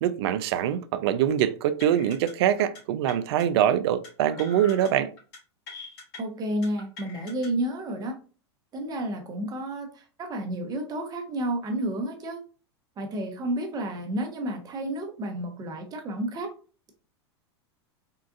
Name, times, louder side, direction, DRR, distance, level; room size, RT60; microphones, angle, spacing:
voice 1, 0.0-5.1, right 10 dB, 65° right, 0.4 m, -24 dB
sound 1, 1.8-2.3 2.6-2.8 3.1-3.4 4.0-4.9 5.2-5.4 5.7-6.2 6.6-7.5, left 4 dB, 60° left, 1.6 m, -43 dB
voice 2, 6.2-8.1 8.7-12.4 13.0-16.5, right 1 dB, 25° right, 0.8 m, -31 dB
3.7 x 2.4 x 2.4 m
hypercardioid pair, 105°, 15 cm